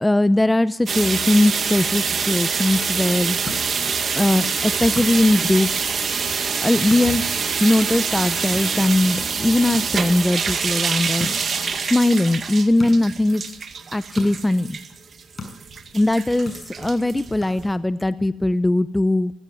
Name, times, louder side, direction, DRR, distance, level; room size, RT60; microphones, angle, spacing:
voice 1, 0.0-3.4 4.1-6.0 6.6-7.2 7.6-11.3 11.8-13.5 13.9-14.8 15.9-19.3, left 1 dB, 10° left, 13 dB, 0.7 m, -20 dB
sound 1, 0.9-17.7, right 6 dB, 45° right, 2.0 m, -25 dB
sound 2, 3.3-18.1, left 3 dB, 30° left, 6.6 m, -40 dB
17.0 x 16.5 x 10.0 m, 0.70 s
cardioid pair, 90°, 0 cm